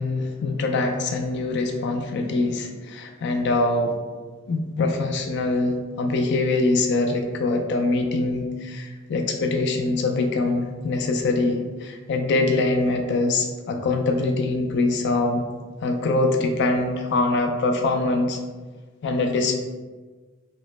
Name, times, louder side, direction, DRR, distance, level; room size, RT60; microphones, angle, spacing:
voice 1, 0.0-4.0 4.5-15.4 15.8-18.4 19.0-19.5, left 2 dB, 55° left, 4 dB, 0.4 m, -23 dB
3.0 x 2.1 x 3.1 m, 1.4 s
head